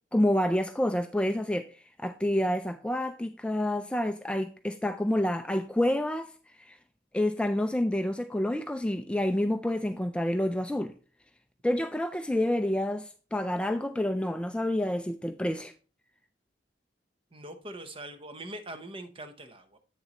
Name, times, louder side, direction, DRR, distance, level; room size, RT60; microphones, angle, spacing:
voice 1, 0.1-6.3 6.6-6.8 7.1-10.9 11.6-15.7, left 1 dB, 5° left, 0.3 m, -28 dB
voice 2, 17.3-19.8, right 1 dB, 30° right, 0.8 m, -42 dB
8.3 x 6.8 x 2.9 m
head